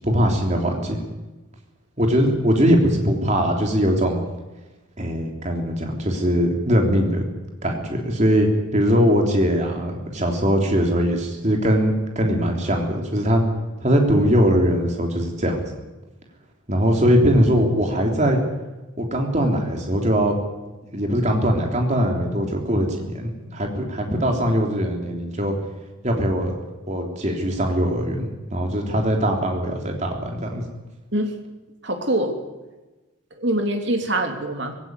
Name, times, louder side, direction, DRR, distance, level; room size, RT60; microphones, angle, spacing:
voice 1, 0.0-1.1 2.0-4.2 5.0-7.2 7.6-13.4 13.8-15.6 16.7-18.4 19.0-20.4 20.9-25.5 26.0-26.5 26.9-30.6, equal, 35° right, 2 dB, 3.4 m, -21 dB
voice 2, 31.8-32.4 33.4-34.7, right 1 dB, 60° right, 4 dB, 3.2 m, -24 dB
20.0 x 17.0 x 9.6 m, 1.1 s
head